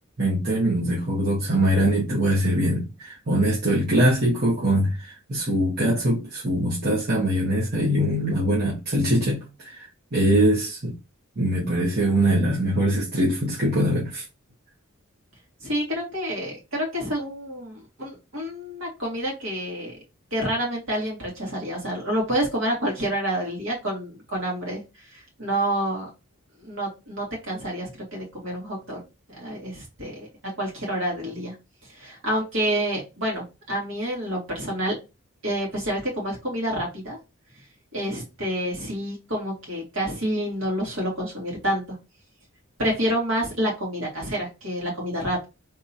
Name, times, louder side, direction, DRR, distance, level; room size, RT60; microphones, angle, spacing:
voice 1, 0.2-9.9 10.1-11.0 11.4-14.2, right 1 dB, 50° right, 1.2 m, -22 dB
voice 2, 15.6-20.0 20.3-24.8 25.1-26.1 26.6-29.0 29.3-30.3 30.6-31.5 31.9-35.0 35.4-37.2 37.9-42.0 42.8-45.4, equal, 65° right, 2.2 m, -28 dB
3.5 x 3.0 x 2.6 m
head